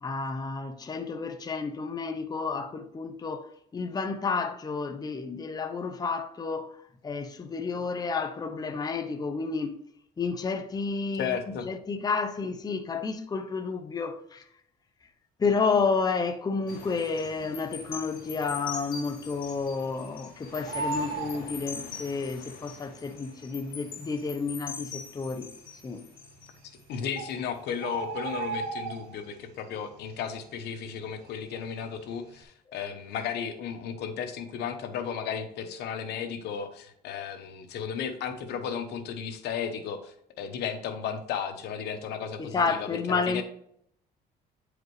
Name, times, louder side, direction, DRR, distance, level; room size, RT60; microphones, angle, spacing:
voice 1, 0.0-9.8 10.2-14.5 15.4-25.5 25.8-26.0 42.4-43.4, left 4 dB, 25° left, 0.7 m, -31 dB
voice 2, 11.2-11.6 26.9-43.4, left 7 dB, 75° left, 1.0 m, -34 dB
sound 1, 16.7-27.2 27.7-27.9, left 6 dB, 60° left, 1.8 m, -43 dB
Bird, 17.8-18.3 18.7-18.8 19.0-20.2 20.5-22.3 23.2-23.3 23.9-24.0 24.2-24.3 25.0-25.4 26.4-26.5 26.8-26.9 27.2-29.4 29.8-30.1 30.4-31.8 32.1-32.4, right 5 dB, 85° right, 1.2 m, -36 dB
9.2 x 4.9 x 3.2 m
cardioid pair, 110°, 17 cm